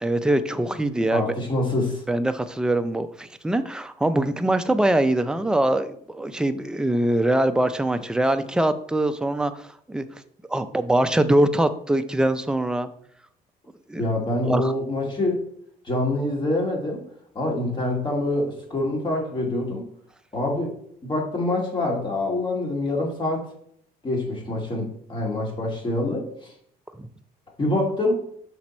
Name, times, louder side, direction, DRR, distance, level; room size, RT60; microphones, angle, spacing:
voice 1, 0.0-1.3 2.1-10.1 10.5-12.9 13.9-14.0 14.4-14.7, right 1 dB, 5° right, 9 dB, 0.5 m, -23 dB
voice 2, 1.1-2.0 14.0-15.4 15.8-17.0 17.3-19.8 20.3-20.7 21.0-23.5 24.0-26.5 27.6-28.2, left 2 dB, 30° left, 0 dB, 2.2 m, -25 dB
6.0 x 4.6 x 4.2 m, 0.65 s
cardioid pair, 110°, 17 cm